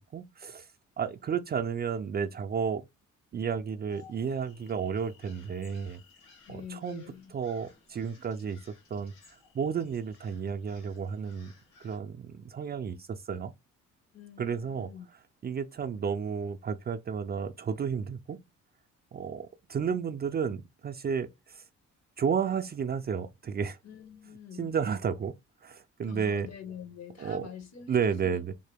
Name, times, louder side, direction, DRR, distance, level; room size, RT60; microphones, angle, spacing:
voice 1, 0.1-0.7 1.0-2.8 3.3-6.0 6.5-7.0 7.3-9.1 9.5-11.5 11.8-13.5 14.4-14.9 15.4-18.4 19.1-21.6 22.2-23.8 24.6-25.3 25.6-26.5 27.2-27.5 27.9-28.5, right 6 dB, 35° right, 0.4 m, -32 dB
sound 1, 3.9-12.0, left 5 dB, 90° left, 1.1 m, -59 dB
voice 2, 6.4-7.4 14.1-15.1 23.8-24.7 26.0-28.4, left 8 dB, 60° left, 1.1 m, -46 dB
3.7 x 2.1 x 3.3 m
cardioid pair, 90°, 30 cm